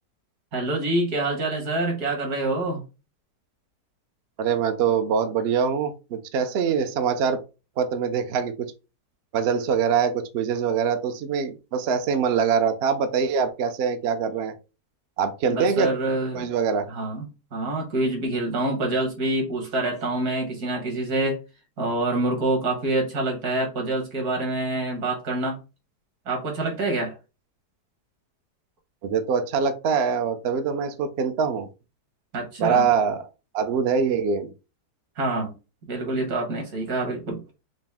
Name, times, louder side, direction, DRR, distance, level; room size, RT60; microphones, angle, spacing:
voice 1, 0.5-2.8 15.5-16.5 16.9-21.4 21.8-25.6 26.3-27.2 32.3-32.9 35.2-35.5 35.9-37.4, right 2 dB, 60° right, 1.8 m, -26 dB
voice 2, 4.4-7.4 7.8-8.5 9.3-14.5 15.2-15.9 16.3-16.9 29.0-31.7 32.6-33.3 33.5-34.5, right 6 dB, 90° right, 0.5 m, -24 dB
5.0 x 2.1 x 3.5 m
omnidirectional pair, 1.8 m